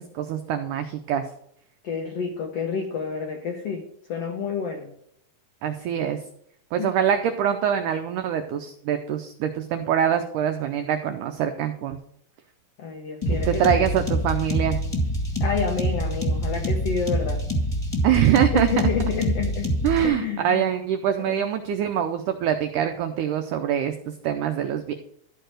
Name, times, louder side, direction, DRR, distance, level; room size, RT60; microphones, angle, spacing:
voice 1, 0.1-1.2 5.6-6.2 6.7-12.0 13.5-14.8 18.0-18.7 19.8-24.9, right 9 dB, 85° right, 7 dB, 1.8 m, -24 dB
voice 2, 1.8-3.8 4.1-4.9 6.8-6.9 12.8-13.8 15.4-17.4 18.5-19.7 20.0-20.7 21.2-21.4, left 6 dB, 90° left, 3 dB, 1.3 m, -29 dB
sound 1, 13.2-20.1, equal, 15° left, 1.1 m, -25 dB
13.5 x 4.6 x 6.4 m, 0.70 s
omnidirectional pair, 4.4 m